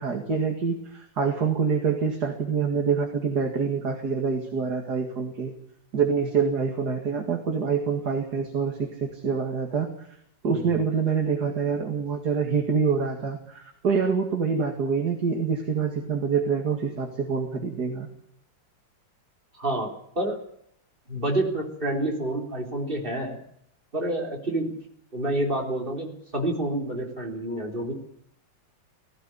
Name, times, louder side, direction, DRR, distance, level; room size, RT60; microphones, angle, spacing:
voice 1, 0.0-5.5 5.9-10.1 10.4-18.1, right 6 dB, 55° right, 3 dB, 2.7 m, -26 dB
voice 2, 19.5-19.9 20.1-20.4 21.1-23.4 23.9-24.7 25.1-27.9, right 1 dB, 25° right, 1 dB, 3.8 m, -28 dB
18.0 x 16.0 x 9.9 m, 0.73 s
omnidirectional pair, 2.1 m